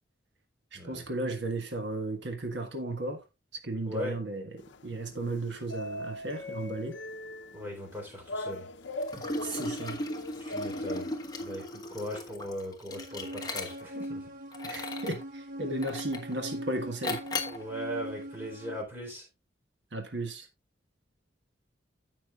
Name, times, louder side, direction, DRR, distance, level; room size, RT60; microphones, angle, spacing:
voice 1, 0.7-3.2 3.6-4.4 4.8-7.0 9.4-10.0 14.6-17.2 19.9-20.5, right 2 dB, 70° right, 1.6 m, -35 dB
voice 2, 3.8-4.2 7.5-8.7 10.4-11.1 11.4-14.3 17.5-19.3, equal, 10° right, 3.9 m, -39 dB
sound 1, 4.6-11.6, left 1 dB, 75° left, 0.7 m, -41 dB
Liquid, 9.0-14.0 14.5-15.2 15.8-16.3 17.0-17.6, left 2 dB, 20° left, 1.2 m, -37 dB
sound 2, 12.9-18.8, equal, 45° right, 1.4 m, -41 dB
16.5 x 5.8 x 2.4 m
head